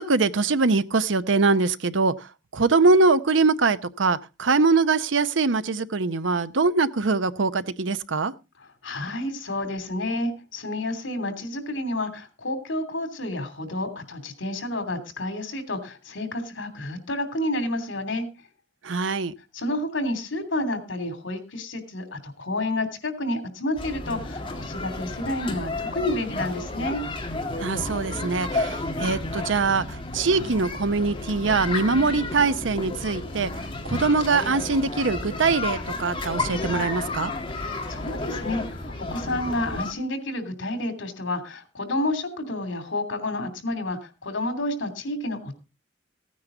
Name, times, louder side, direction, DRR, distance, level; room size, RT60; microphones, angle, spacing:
voice 1, 0.0-8.3 18.8-19.3 27.6-33.5 33.8-37.3, right 4 dB, 80° right, 0.8 m, -23 dB
voice 2, 8.8-18.3 19.5-27.0 37.5-45.5, left 1 dB, 85° left, 2.9 m, -30 dB
sound 1, 23.8-39.9, left 2 dB, 30° left, 2.0 m, -32 dB
16.0 x 9.5 x 3.8 m
head